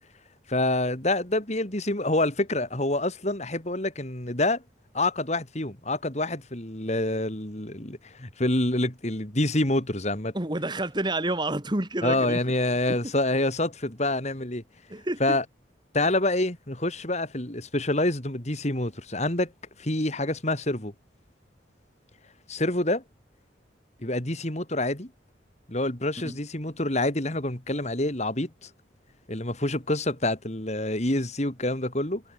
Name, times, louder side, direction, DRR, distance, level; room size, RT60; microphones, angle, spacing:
voice 1, 0.5-4.6 4.9-10.3 12.0-14.6 15.2-15.4 15.9-19.5 19.8-20.9 22.5-23.0 24.0-25.1 25.7-28.7 29.3-32.2, left 1 dB, 40° left, 3.2 m, -27 dB
voice 2, 10.3-12.4 14.9-15.4 26.2-26.4, right 1 dB, 25° right, 2.1 m, -29 dB
head